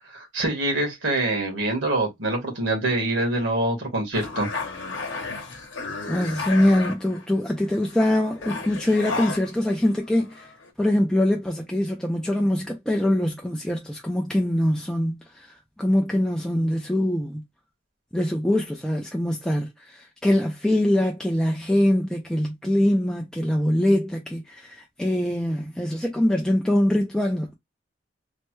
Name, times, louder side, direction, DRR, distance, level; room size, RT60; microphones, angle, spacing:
voice 1, 0.1-4.5, right 2 dB, 80° right, 1.5 m, -25 dB
sound 1, 4.1-7.3 7.7-10.0 10.3-10.7, left 4 dB, 80° left, 0.8 m, -33 dB
voice 2, 6.1-10.5 10.8-17.4 18.1-27.5, left 1 dB, 5° left, 0.4 m, -23 dB
3.2 x 2.2 x 3.0 m
head